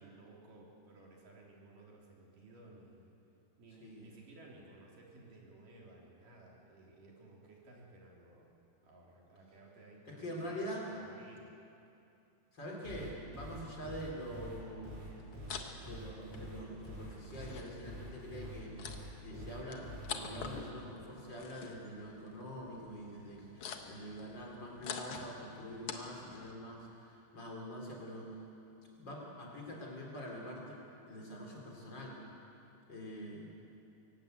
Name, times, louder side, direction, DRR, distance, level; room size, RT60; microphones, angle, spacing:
voice 1, 0.0-3.1 3.6-8.5 8.8-11.5, right 2 dB, 55° right, -3 dB, 4.9 m, -57 dB
voice 2, 10.1-10.9 12.5-15.0 15.8-18.7 19.2-28.4 29.0-30.8 31.1-32.2 32.9-33.5, equal, 25° left, -2 dB, 4.2 m, -45 dB
sound 1, 12.8-20.6, right 1 dB, 70° right, 9.7 m, -46 dB
sound 2, 15.1-26.5, left 6 dB, 80° left, 1.2 m, -48 dB
24.0 x 18.5 x 8.4 m, 2.7 s
omnidirectional pair, 4.8 m